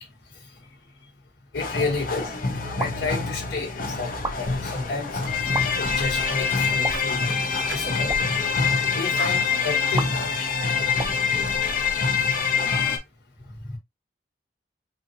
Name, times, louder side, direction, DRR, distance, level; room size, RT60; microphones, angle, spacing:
voice 1, 0.3-0.7 1.5-2.3 2.8-5.2 5.8-7.4 7.7-8.3 8.9-10.2 13.4-13.8, left 3 dB, 65° left, 1.3 m, -31 dB
sound 1, 1.5-13.0, left 5 dB, 50° left, 0.8 m, -25 dB
sound 2, 2.8-3.1 4.1-4.4 5.4-5.7 6.8-7.2 8.0-8.3 10.0-10.1 10.9-12.1, right 3 dB, 20° right, 0.5 m, -33 dB
sound 3, 4.6-4.8 5.2-5.4 5.8-6.1 6.5-7.4 7.7-8.8 9.2-9.4, right 5 dB, 75° right, 0.6 m, -39 dB
4.4 x 2.7 x 2.7 m
head